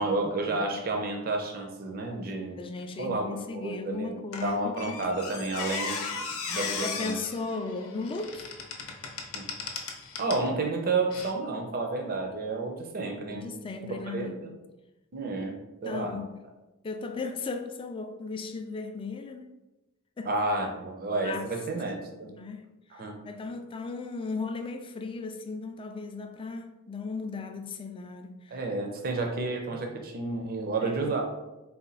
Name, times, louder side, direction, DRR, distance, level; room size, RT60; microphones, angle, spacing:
voice 1, 0.0-2.6 3.0-6.0 6.3-7.2 9.3-9.5 10.2-13.5 13.9-14.5 15.1-15.5 15.8-16.2 20.2-22.3 23.0-23.2 28.5-31.2, right 3 dB, 45° right, 0.5 m, -31 dB
voice 2, 2.6-5.0 6.8-8.6 13.3-14.5 15.8-16.4 16.8-19.5 20.2-20.3 21.1-21.5 22.2-22.7 23.0-28.6 29.7-29.9 30.8-31.2, left 4 dB, 25° left, 0.3 m, -36 dB
Squeak, 4.3-10.5 11.1-11.3, left 5 dB, 75° left, 0.6 m, -36 dB
4.1 x 2.2 x 3.9 m
head